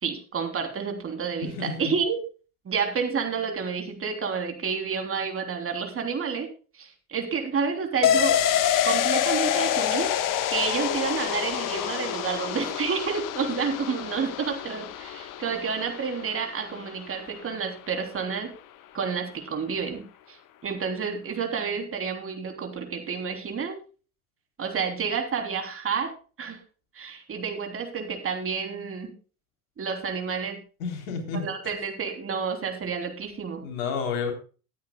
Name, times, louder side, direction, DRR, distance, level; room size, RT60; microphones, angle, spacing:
voice 1, 0.0-2.2 2.6-6.5 6.7-8.4 8.8-10.1 10.5-18.5 18.9-23.8 24.6-26.1 26.4-26.6 26.9-29.1 29.8-30.6 31.3-33.6, right 6 dB, 30° right, 5 dB, 3.4 m, -30 dB
voice 2, 1.4-1.7 30.8-31.5 33.6-34.3, left 5 dB, 70° left, 5 dB, 3.7 m, -30 dB
sound 1, 8.0-17.4 17.7-17.8, left 10 dB, 50° left, 1.4 m, -27 dB
19.5 x 9.4 x 2.3 m, 0.36 s
hypercardioid pair, 75°, 42 cm